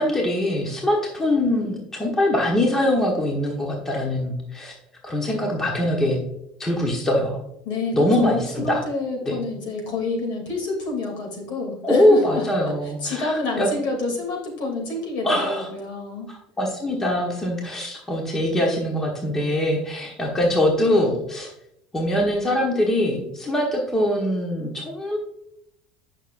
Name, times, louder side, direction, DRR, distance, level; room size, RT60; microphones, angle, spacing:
voice 1, 0.0-4.7 5.0-6.2 6.6-7.4 7.9-8.8 9.3-9.4 11.8-13.7 15.2-15.7 16.6-21.5 21.9-25.2, left 1 dB, 15° left, -1 dB, 1.2 m, -22 dB
voice 2, 7.6-16.3, left 3 dB, 65° left, 0 dB, 2.9 m, -28 dB
9.1 x 6.0 x 2.6 m, 0.79 s
cardioid pair, 145°, 3 cm